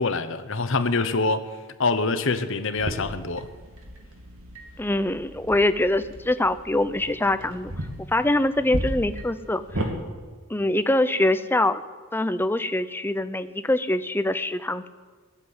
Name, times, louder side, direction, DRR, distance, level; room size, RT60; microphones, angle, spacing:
voice 1, 0.0-1.5 1.8-3.5, left 3 dB, 60° left, 10 dB, 1.0 m, -25 dB
sound 1, 2.8-9.9, right 1 dB, 75° right, 2.5 m, -35 dB
voice 2, 4.8-7.7 8.1-9.8 10.5-11.8 12.1-14.9, left 1 dB, 10° left, 12 dB, 0.5 m, -24 dB
19.5 x 7.5 x 9.7 m, 1.5 s
head